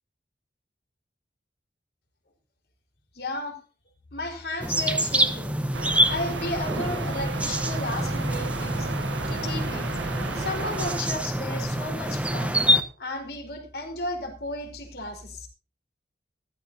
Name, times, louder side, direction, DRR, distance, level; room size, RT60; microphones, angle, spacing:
voice 1, 3.1-3.6 4.1-5.6 6.0-8.9 9.3-9.9 10.4-12.6 13.0-15.5, left 2 dB, 65° left, 3 dB, 4.6 m, -34 dB
sound 1, 4.6-12.8, equal, 5° right, 1.2 m, -26 dB
sound 2, 5.7-11.0, right 3 dB, 90° right, 1.0 m, -34 dB
15.5 x 15.0 x 2.8 m, 0.36 s
head